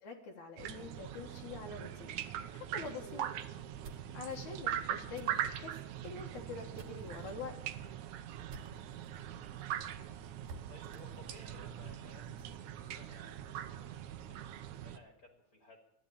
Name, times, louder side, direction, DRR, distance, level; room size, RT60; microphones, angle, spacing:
voice 1, 0.0-2.1 2.5-3.3 4.1-5.8 6.0-7.6, left 4 dB, 75° left, 0 dB, 3.0 m, -45 dB
sound 1, 0.6-15.0, right 10 dB, 80° right, 2.2 m, -42 dB
sound 2, 3.5-9.2 9.6-9.7 9.9-10.0 10.5-12.6, right 2 dB, 55° right, 2.4 m, -56 dB
voice 2, 9.0-9.6 10.7-15.8, left 2 dB, 30° left, 2 dB, 2.2 m, -60 dB
14.5 x 11.0 x 8.6 m, 0.82 s
omnidirectional pair, 3.4 m